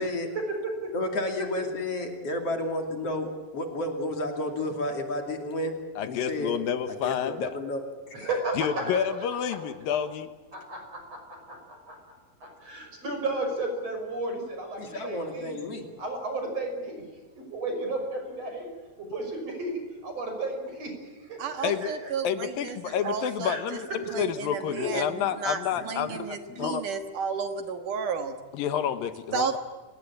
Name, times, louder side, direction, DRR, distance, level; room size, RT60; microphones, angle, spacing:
voice 1, 0.3-0.9 2.5-2.6 8.1-9.1 10.5-12.0 12.4-15.5 16.0-17.1 17.4-18.7 19.0-22.0 23.4-23.6 24.1-24.2 24.8-24.9 25.2-25.3 25.7-26.2 26.5-26.7, right 2 dB, 45° right, 4 dB, 6.9 m, -34 dB
voice 2, 0.9-5.8 6.0-6.5 7.0-7.8 8.1-8.3 14.8-15.9, left 1 dB, 45° left, 4 dB, 3.4 m, -31 dB
voice 3, 6.0-7.6 8.6-10.3 21.6-21.9 22.2-23.9 24.2-26.8 28.5-29.6, left 9 dB, 80° left, 10 dB, 3.0 m, -29 dB
voice 4, 21.4-23.6 24.1-28.4 29.3-29.6, right 6 dB, 65° right, 7 dB, 2.9 m, -32 dB
29.5 x 18.5 x 8.8 m, 1.3 s
omnidirectional pair, 4.1 m